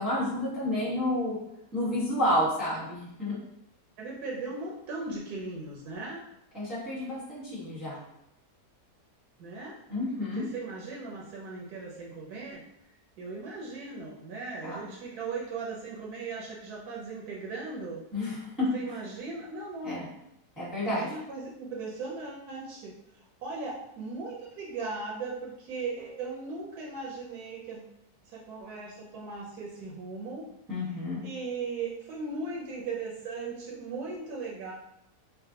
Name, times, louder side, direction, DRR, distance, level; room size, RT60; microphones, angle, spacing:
voice 1, 0.0-1.4 1.7-3.4 6.5-8.0 9.9-10.4 14.6-14.8 18.1-18.7 19.8-20.1 20.6-21.1 30.7-31.2, left 1 dB, ahead, -9 dB, 0.8 m, -30 dB
voice 2, 4.0-6.2 9.4-9.7 10.4-12.6 13.2-18.0 18.7-20.1 20.9-27.9 28.2-30.4 31.2-34.7, right 3 dB, 80° right, -4 dB, 1.2 m, -38 dB
3.3 x 2.1 x 2.7 m, 0.81 s
omnidirectional pair, 1.6 m